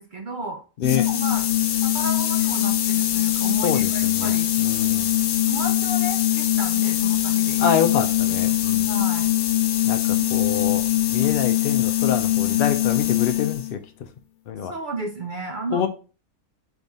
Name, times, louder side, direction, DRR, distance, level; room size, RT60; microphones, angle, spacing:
voice 1, 0.0-0.6 0.9-1.5 1.8-4.5 5.5-7.8 8.3-9.3 10.2-10.3 14.6-15.9, right 2 dB, 55° right, 4 dB, 0.5 m, -33 dB
sound 1, 0.8-13.7, left 13 dB, 85° left, 1.1 m, -22 dB
voice 2, 3.6-4.3 4.6-5.1 7.6-8.9 9.8-13.8 14.5-14.7 15.7-15.9, left 8 dB, 70° left, 8 dB, 0.5 m, -26 dB
4.1 x 3.5 x 3.4 m, 0.35 s
omnidirectional pair, 1.5 m